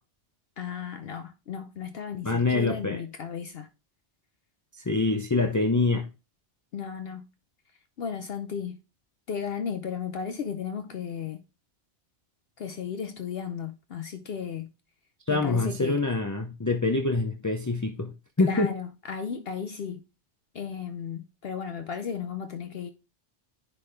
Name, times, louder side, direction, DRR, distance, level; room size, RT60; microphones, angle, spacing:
voice 1, 0.6-3.7 6.7-7.3 8.0-8.8 9.3-11.4 12.6-14.7 15.3-16.0 18.4-20.0 20.5-22.9, left 7 dB, 60° left, 0.8 m, -34 dB
voice 2, 2.2-3.0 4.8-6.1 15.3-18.1 18.4-18.7, left 3 dB, 25° left, 0.4 m, -25 dB
10.0 x 3.9 x 3.2 m
omnidirectional pair, 1.2 m